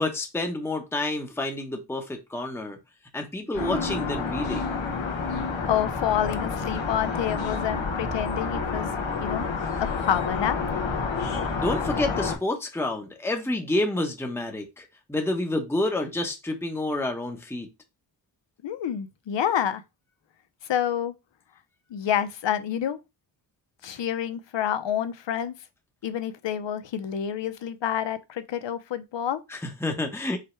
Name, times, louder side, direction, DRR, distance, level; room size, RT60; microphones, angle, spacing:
voice 1, 0.0-2.8 3.1-4.7 11.6-17.7 29.5-30.4, left 2 dB, 5° left, 0.8 m, -29 dB
sound 1, 3.5-12.4, left 4 dB, 90° left, 1.2 m, -29 dB
voice 2, 5.6-8.9 9.2-9.5 10.0-10.6 18.6-19.8 20.7-21.1 21.9-23.0 23.8-25.5 26.0-29.4, left 10 dB, 70° left, 0.7 m, -28 dB
5.0 x 2.2 x 4.3 m
cardioid pair, 70°, 45 cm